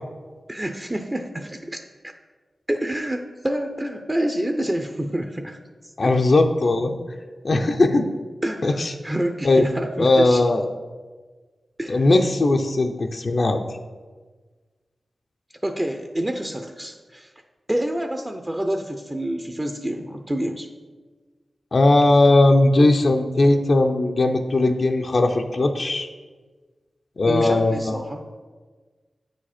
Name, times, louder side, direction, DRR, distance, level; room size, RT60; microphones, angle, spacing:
voice 1, 0.5-1.8 2.7-5.6 6.0-6.1 8.4-10.4 11.8-12.1 15.6-17.3 17.7-20.7 27.2-28.2, right 1 dB, 25° right, 6 dB, 0.5 m, -27 dB
voice 2, 6.0-6.9 7.4-8.1 8.6-8.9 9.4-9.6 10.0-10.7 11.9-13.6 21.7-26.1 27.2-28.0, left 2 dB, 65° left, 4 dB, 0.5 m, -18 dB
8.4 x 5.0 x 4.2 m, 1.4 s
cardioid pair, 55°, 0 cm